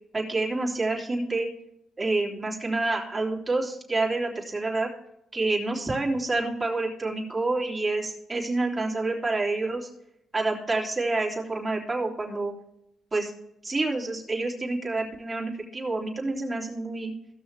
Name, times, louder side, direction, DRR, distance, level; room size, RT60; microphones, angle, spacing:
voice 1, 0.1-1.5 2.0-4.9 5.3-9.9 10.3-12.5 13.1-13.3 13.6-17.1, right 2 dB, 25° right, -2 dB, 3.2 m, -28 dB
16.5 x 6.3 x 3.4 m, 0.80 s
cardioid pair, 90°, 0 cm